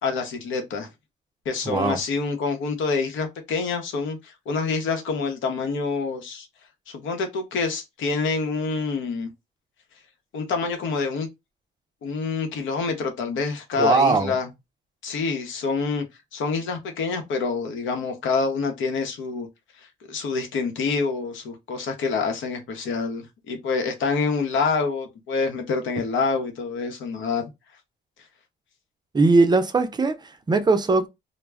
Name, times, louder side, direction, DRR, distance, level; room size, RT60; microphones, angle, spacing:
voice 1, 0.0-0.9 1.4-6.5 6.9-9.3 10.3-11.3 12.0-14.5 15.0-19.5 19.7-27.4, left 4 dB, 75° left, 0.8 m, -27 dB
voice 2, 1.7-2.0 13.8-14.3 29.1-31.1, right 3 dB, 20° right, 0.4 m, -20 dB
2.2 x 2.0 x 3.4 m
cardioid pair, 90°, 20 cm